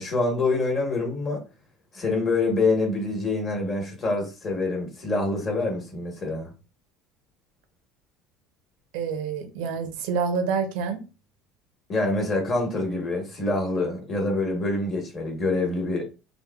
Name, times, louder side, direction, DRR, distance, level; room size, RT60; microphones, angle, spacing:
voice 1, 0.0-1.4 1.9-6.5 11.9-16.1, left 2 dB, 30° left, 1.0 m, -26 dB
voice 2, 8.9-11.0, right 5 dB, 80° right, 0.6 m, -27 dB
3.3 x 2.0 x 2.2 m
cardioid pair, 150°, 0 cm